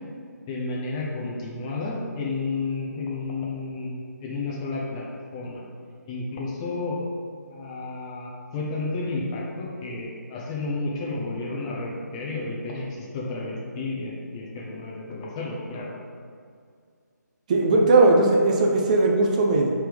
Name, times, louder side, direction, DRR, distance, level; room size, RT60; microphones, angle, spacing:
voice 1, 0.5-5.0 5.3-5.6 6.1-7.0 7.5-15.9, left 3 dB, 20° left, -3 dB, 0.7 m, -31 dB
voice 2, 17.5-19.7, right 2 dB, 25° right, 1 dB, 0.5 m, -18 dB
5.8 x 3.5 x 5.0 m, 2.2 s
figure-of-eight pair, 150°, 10 cm